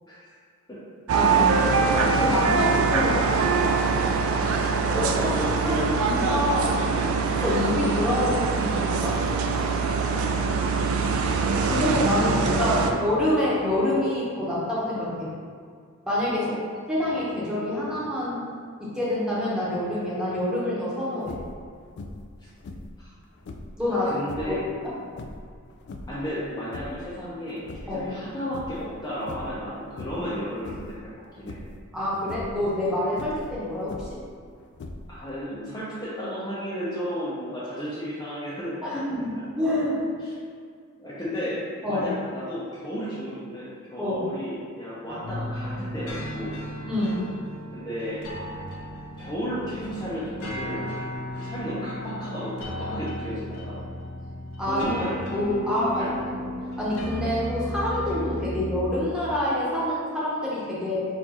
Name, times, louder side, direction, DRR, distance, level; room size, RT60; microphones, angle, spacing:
voice 1, 1.1-1.6 2.2-3.7 4.9-5.2 5.6-6.8 7.4-9.2 11.6-15.3 16.0-16.5 16.9-18.5 18.8-21.4 23.8-24.1 24.4-24.6 27.9-28.0 31.9-34.1 38.8-40.0 41.8-42.1 44.0-44.2 46.9-47.3 54.6-54.9 55.3-56.1 56.4-56.5 56.8-61.0, left 1 dB, 5° right, -9 dB, 1.1 m, -26 dB
sound 1, 1.1-12.9, right 4 dB, 70° right, 0.4 m, -23 dB
voice 2, 4.8-7.3 9.7-10.4 11.6-11.8 12.2-13.0 16.3-16.6 23.0-23.1 24.0-24.6 26.1-31.1 31.4-31.6 35.1-39.4 40.2-40.3 41.0-41.6 41.9-46.5 47.7-48.3 49.2-50.9 51.3-53.7 54.6-55.1 55.5-55.6 55.9-56.2, equal, 20° left, -10 dB, 0.6 m, -33 dB
sound 2, 21.2-21.6 22.0-22.3 22.6-23.8 24.2-24.6 25.1-26.2 26.6-27.1 27.5-28.3 28.5-28.9 29.2-29.6 30.0-30.3 30.6-31.0 31.5-31.8 32.2-32.6 33.1-34.3 34.7-35.3, left 2 dB, 55° left, 0.3 m, -40 dB
sound 3, 45.2-58.9, equal, 85° left, 0.8 m, -35 dB
4.5 x 2.5 x 4.2 m, 2.1 s
head